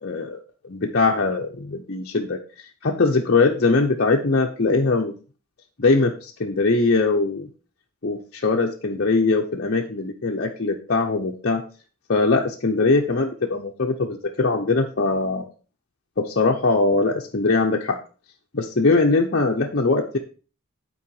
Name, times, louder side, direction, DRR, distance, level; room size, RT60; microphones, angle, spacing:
voice 1, 0.0-0.4 0.6-5.1 5.8-7.5 8.0-11.6 12.1-15.5 16.2-18.0 18.5-20.2, left 3 dB, 50° left, -1 dB, 0.8 m, -21 dB
8.7 x 4.7 x 4.7 m, 0.37 s
head